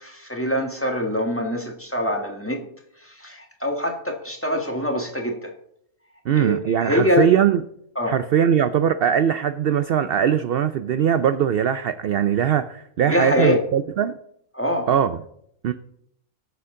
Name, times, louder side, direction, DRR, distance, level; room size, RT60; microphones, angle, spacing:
voice 1, 0.0-2.6 3.0-5.5 6.4-7.3 7.9-8.2 13.1-13.6 14.5-14.9, left 1 dB, 10° left, 1.4 m, -24 dB
voice 2, 6.3-7.6 8.1-14.1 14.9-15.2 15.6-15.7, right 9 dB, 65° right, 0.5 m, -21 dB
19.5 x 7.0 x 3.7 m
omnidirectional pair, 1.5 m